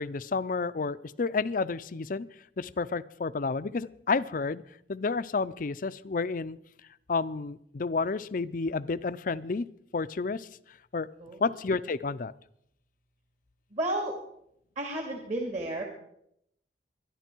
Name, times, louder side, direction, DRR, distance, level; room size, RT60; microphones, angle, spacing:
voice 1, 0.0-2.3 2.6-4.6 4.9-6.6 7.1-9.7 9.9-10.5 10.9-11.1 11.4-12.3, left 4 dB, 50° left, 16 dB, 0.5 m, -30 dB
voice 2, 13.7-14.2 14.8-15.8, right 1 dB, 45° right, 1 dB, 2.3 m, -32 dB
23.5 x 11.0 x 4.5 m, 0.76 s
head